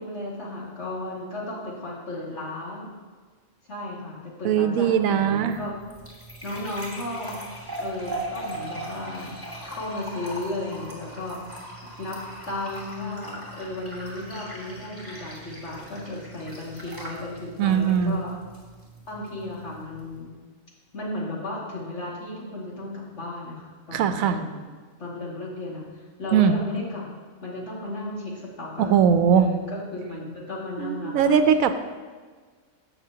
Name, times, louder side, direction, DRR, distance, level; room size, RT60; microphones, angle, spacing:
voice 1, 0.0-2.9 3.7-5.8 6.4-7.4 7.8-9.3 9.6-11.6 12.0-18.3 19.1-20.3 20.9-24.6 25.0-27.0 27.4-28.9 29.3-31.4, left 2 dB, 55° left, -6 dB, 2.6 m, -34 dB
voice 2, 4.4-5.6 17.6-18.2 23.9-24.4 26.3-26.6 28.8-29.5 30.8-31.7, right 7 dB, 85° right, 9 dB, 1.0 m, -20 dB
sound 1, 5.2-20.2, right 1 dB, 10° left, 2.1 m, -39 dB
13.0 x 7.5 x 2.8 m, 1.5 s
omnidirectional pair, 1.4 m